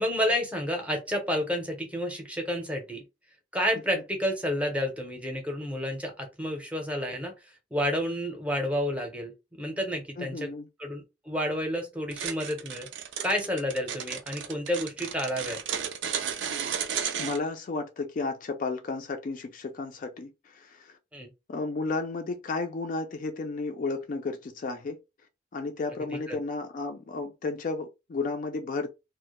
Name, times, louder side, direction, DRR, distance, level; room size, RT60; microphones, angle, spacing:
voice 1, 0.0-3.0 3.5-10.5 10.8-12.9 13.2-15.6 21.1-21.3 26.1-26.4, equal, 5° right, 0.6 m, -30 dB
voice 2, 10.2-10.7 17.1-20.9 21.5-25.0 25.5-28.9, left 3 dB, 45° left, 0.3 m, -33 dB
sound 1, 12.1-17.4, right 8 dB, 80° right, 0.4 m, -33 dB
2.1 x 2.0 x 2.9 m
head